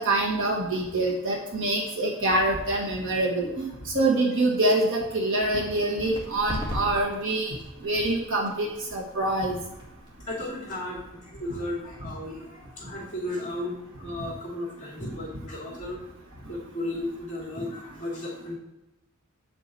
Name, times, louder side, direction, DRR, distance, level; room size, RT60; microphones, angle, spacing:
voice 1, 0.0-3.7 3.9-7.5 7.8-9.6, right 2 dB, 60° right, -2 dB, 1.8 m, -25 dB
sound 1, 6.0-13.4, left 1 dB, 20° right, 2.0 m, -41 dB
voice 2, 10.3-16.0 16.5-18.6, left 1 dB, 35° left, -5 dB, 2.7 m, -35 dB
8.8 x 5.0 x 4.2 m, 0.95 s
head